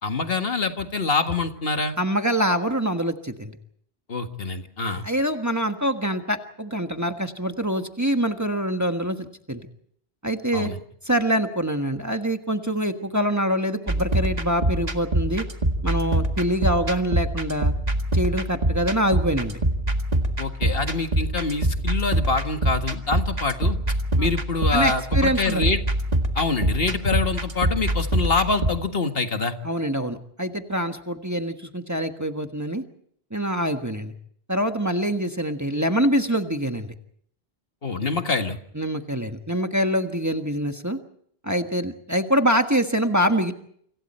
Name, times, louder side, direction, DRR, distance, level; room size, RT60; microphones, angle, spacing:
voice 1, 0.0-2.0 4.1-5.1 10.5-10.8 20.4-23.8 24.2-25.8 26.4-29.5 37.8-38.6, left 4 dB, 65° left, 6 dB, 2.0 m, -25 dB
voice 2, 2.0-3.5 5.0-9.7 10.2-10.7 11.0-15.4 15.8-17.7 18.1-19.6 24.2-24.3 24.7-25.7 29.6-32.8 33.3-34.1 34.5-36.9 38.7-41.0 41.4-43.5, equal, 15° right, 5 dB, 1.4 m, -25 dB
sound 1, 13.9-28.7, right 1 dB, 40° right, 2.0 m, -25 dB
28.5 x 26.5 x 4.4 m, 0.66 s
omnidirectional pair, 1.1 m